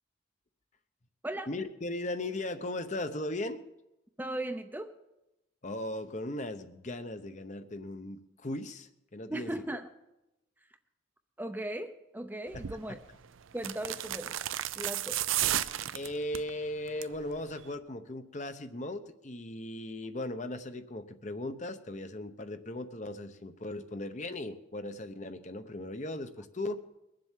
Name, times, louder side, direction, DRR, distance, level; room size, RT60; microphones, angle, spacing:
voice 1, 1.5-3.6 5.6-9.6 12.5-13.0 15.9-26.8, left 1 dB, 35° left, 9 dB, 0.8 m, -38 dB
voice 2, 4.2-4.9 9.3-9.9 11.4-13.0 13.5-14.3 14.8-15.2, right 1 dB, 10° right, 7 dB, 0.6 m, -37 dB
sound 1, 12.5-12.8 13.6-16.5 16.9-17.2 17.5-17.6, right 12 dB, 85° right, 0.5 m, -33 dB
22.0 x 7.7 x 7.4 m, 0.93 s
head